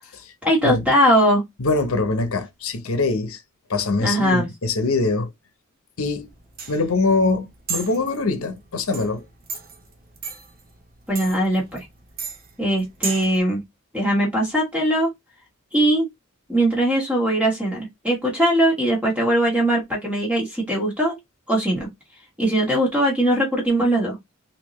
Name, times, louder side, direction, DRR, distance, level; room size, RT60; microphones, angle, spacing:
voice 1, 0.4-1.4 4.0-4.5 11.1-11.8 12.6-13.6 13.9-15.1 15.7-16.1 16.5-21.1 21.5-21.9 22.4-24.2, right 1 dB, 5° right, 1.2 m, -20 dB
voice 2, 1.6-3.4 3.7-5.3 6.0-6.3 6.7-9.2, left 3 dB, 70° left, 0.8 m, -23 dB
sound 1, 6.0-13.4, right 5 dB, 45° right, 0.9 m, -35 dB
3.5 x 2.7 x 3.1 m
head